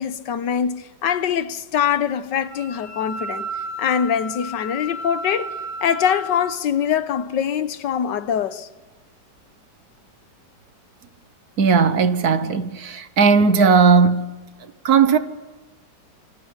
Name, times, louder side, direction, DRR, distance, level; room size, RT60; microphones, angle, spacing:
voice 1, 0.0-3.5 3.8-5.5 5.8-8.7, left 8 dB, 75° left, 1.7 m, -23 dB
Wind instrument woodwind instrument, 2.5-6.5, equal, 30° right, 8.3 m, -33 dB
voice 2, 11.6-14.3 14.8-15.2, right 5 dB, 60° right, 1.6 m, -16 dB
27.0 x 24.5 x 7.4 m
omnidirectional pair, 1.9 m